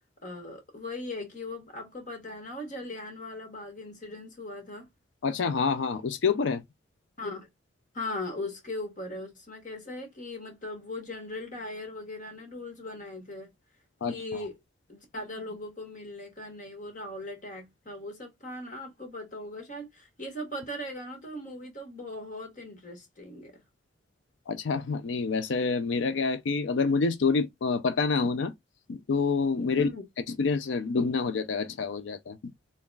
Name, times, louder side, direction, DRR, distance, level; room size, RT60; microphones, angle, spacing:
voice 1, 0.2-4.9 7.2-7.5 7.9-13.5 14.1-14.6 14.9-23.6 29.7-30.0, left 2 dB, 45° left, 1.6 m, -39 dB
voice 2, 5.2-6.6 14.0-14.2 24.5-28.5 28.9-29.9 30.3-32.5, left 4 dB, 80° left, 0.4 m, -27 dB
3.8 x 3.4 x 2.3 m
head